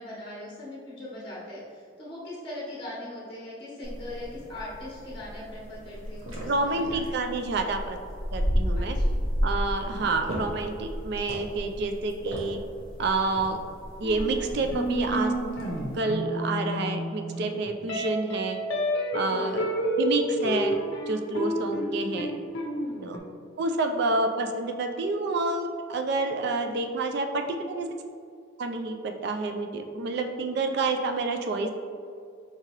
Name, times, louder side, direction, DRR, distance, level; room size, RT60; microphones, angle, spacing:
voice 1, 0.0-7.1 8.8-9.1 19.3-19.8 21.7-21.9, left 1 dB, 25° left, -7 dB, 0.7 m, -40 dB
sound 1, 3.8-16.0, equal, 80° right, 0.9 m, -33 dB
voice 2, 6.4-8.0 8.3-9.0 9.4-12.6 13.0-13.6 14.0-15.3 15.9-18.6 19.1-19.7 20.0-20.7 21.1-22.3 23.0-23.2 23.6-27.9 28.6-31.7, right 3 dB, 55° right, 5 dB, 0.3 m, -28 dB
sound 2, 14.0-23.2, equal, 65° left, 0.5 m, -30 dB
4.7 x 2.8 x 2.9 m, 2.2 s
head